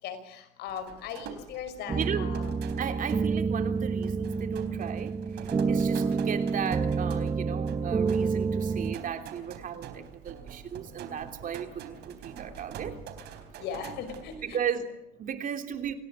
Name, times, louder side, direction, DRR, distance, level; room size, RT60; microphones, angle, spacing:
voice 1, 0.0-2.5 13.6-14.6, left 7 dB, 80° left, 9 dB, 5.4 m, -38 dB
sound 1, 0.7-14.5, right 7 dB, 80° right, 3.9 m, -46 dB
sound 2, 1.9-9.0, right 5 dB, 25° right, 1.1 m, -28 dB
voice 2, 1.9-5.1 5.4-13.0 14.4-15.9, right 8 dB, 55° right, 6 dB, 3.3 m, -35 dB
27.0 x 18.0 x 8.3 m, 0.81 s
cardioid pair, 110°, 17 cm